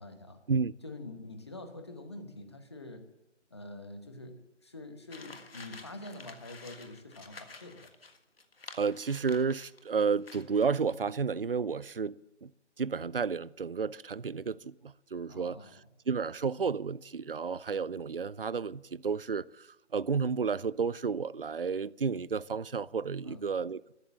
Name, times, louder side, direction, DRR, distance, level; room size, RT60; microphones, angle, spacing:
voice 1, 0.0-0.4 0.8-3.1 3.5-7.9 15.3-15.9 23.2-23.5, left 2 dB, 20° left, 1.1 m, -46 dB
sound 1, 5.1-9.9 10.2-10.7, left 3 dB, 50° left, 1.7 m, -50 dB
voice 2, 8.7-12.5 12.8-15.6 16.1-19.7 19.9-23.9, right 5 dB, 50° right, 0.4 m, -31 dB
14.0 x 13.0 x 7.4 m
figure-of-eight pair, 170°, 36 cm